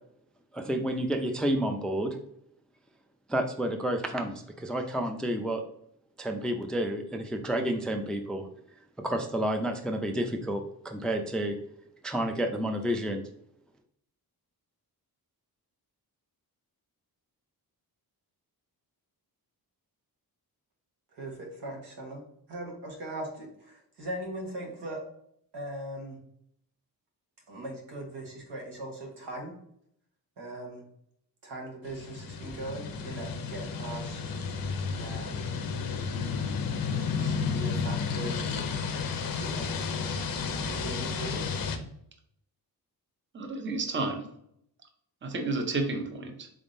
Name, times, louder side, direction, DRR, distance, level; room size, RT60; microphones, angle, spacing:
voice 1, 0.5-2.2 3.3-5.6 6.2-8.5 9.0-11.6 12.0-13.2, right 1 dB, ahead, 5 dB, 0.3 m, -30 dB
voice 2, 21.1-22.2 22.5-25.0 25.5-26.2 27.5-29.5 30.4-30.8 31.4-34.2 35.0-35.4 37.2-39.0 39.4-41.5, right 1 dB, 90° right, -1 dB, 1.3 m, -40 dB
sound 1, 31.9-41.8, left 5 dB, 60° left, 0.6 m, -32 dB
voice 3, 43.3-44.3 45.2-46.5, right 3 dB, 30° right, 4 dB, 0.7 m, -31 dB
3.7 x 3.5 x 2.6 m, 0.71 s
wide cardioid pair, 105°, 39 cm